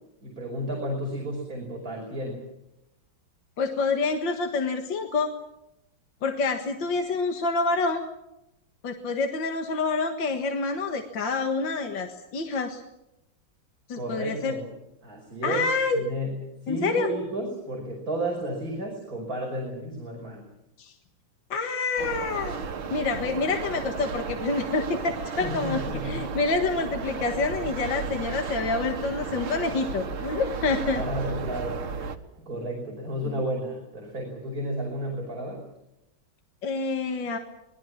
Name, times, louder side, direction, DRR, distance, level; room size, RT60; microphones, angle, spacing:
voice 1, 0.2-2.4 13.9-14.7 15.0-15.6 15.9-16.4 16.6-20.5 25.4-26.3 30.9-32.1 32.4-35.6, right 1 dB, 45° right, 0 dB, 5.9 m, -32 dB
voice 2, 3.6-5.3 6.2-8.0 8.8-12.8 13.9-14.6 15.4-16.0 16.7-17.1 20.8-20.9 21.5-22.6 22.9-25.8 26.0-31.0 36.6-37.4, left 4 dB, 65° left, 4 dB, 2.3 m, -27 dB
sound 1, 22.0-32.2, right 5 dB, 85° right, 2.4 m, -34 dB
26.0 x 21.0 x 7.3 m, 0.87 s
omnidirectional pair, 2.2 m